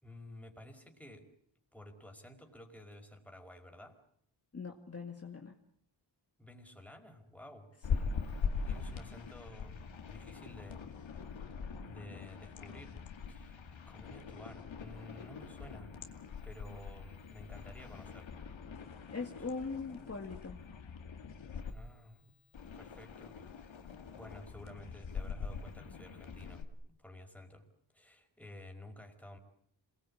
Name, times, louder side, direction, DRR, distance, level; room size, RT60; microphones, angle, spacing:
voice 1, 0.0-1.3 1.7-4.0 6.4-7.7 8.6-10.9 11.8-13.6 13.9-16.0 16.4-18.3 21.7-22.3 22.7-23.4 24.1-27.6 27.9-29.4, left 1 dB, 5° left, 3 dB, 4.9 m, -52 dB
voice 2, 4.5-5.6 19.1-20.6, left 4 dB, 30° left, 2 dB, 2.2 m, -41 dB
sound 1, 7.8-21.7 22.5-26.6, left 5 dB, 85° left, 2.4 m, -42 dB
27.0 x 20.0 x 8.7 m, 0.68 s
wide cardioid pair, 100°, 45 cm